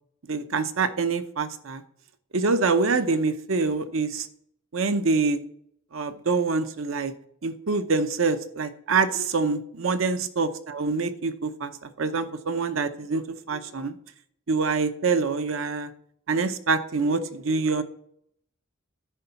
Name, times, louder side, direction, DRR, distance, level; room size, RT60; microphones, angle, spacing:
voice 1, 0.3-1.8 2.3-4.3 4.7-5.4 5.9-7.1 7.4-14.0 14.5-15.9 16.3-17.8, right 4 dB, 80° right, 9 dB, 0.7 m, -25 dB
10.0 x 3.8 x 6.9 m, 0.68 s
head